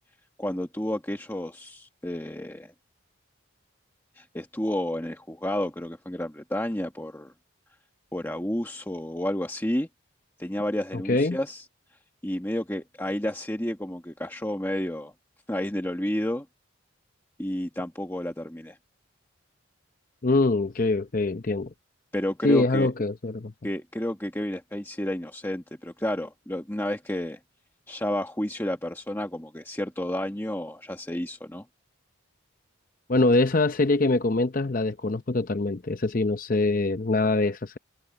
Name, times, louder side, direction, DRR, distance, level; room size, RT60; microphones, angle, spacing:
voice 1, 0.4-2.7 4.1-7.3 8.1-9.9 10.4-11.6 12.2-15.1 15.5-16.4 17.4-18.8 22.1-22.9 23.6-27.4 27.9-31.6, left 1 dB, 10° left, 1.2 m, -31 dB
voice 2, 10.9-11.4 20.2-21.7 22.4-23.5 33.1-37.8, left 2 dB, 40° left, 0.7 m, -24 dB
head